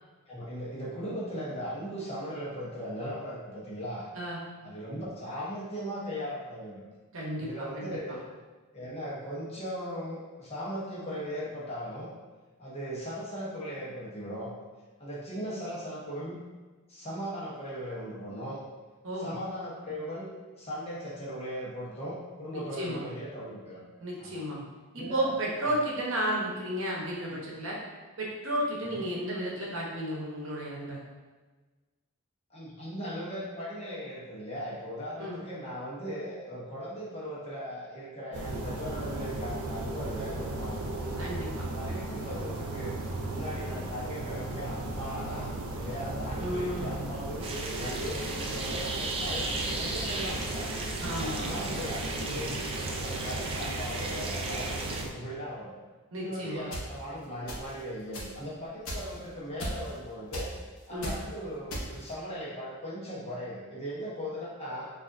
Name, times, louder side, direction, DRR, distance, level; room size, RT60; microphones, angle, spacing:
voice 1, 0.3-4.1 4.6-6.8 7.4-8.2 8.7-12.1 12.6-14.5 15.0-16.4 16.9-18.6 19.2-20.3 20.6-23.8 24.2-24.4 25.0-25.3 25.7-25.8 32.5-41.0 41.7-43.0 43.3-50.7 51.1-52.6 53.0-55.7 56.1-60.5 60.9-64.9, equal, 30° left, -6 dB, 1.0 m, -38 dB
voice 2, 7.1-7.5 7.8-8.2 19.0-19.3 22.5-23.0 24.0-24.6 24.9-27.8 28.2-31.0 35.2-35.4 41.2-41.7 46.4-47.0 51.0-51.6 56.1-56.7 60.9-61.1, right 1 dB, 60° right, -4 dB, 0.9 m, -33 dB
sound 1, 38.3-55.1, right 2 dB, 80° right, 0.6 m, -36 dB
sound 2, 47.4-55.0, right 3 dB, 25° right, 0.3 m, -36 dB
sound 3, 56.7-56.8 57.5-57.8 58.1-58.3 58.8-59.2 59.6-60.0 60.3-60.6 61.0-61.2 61.7-62.1, equal, 65° left, 0.9 m, -35 dB
6.0 x 2.6 x 2.6 m, 1.3 s
head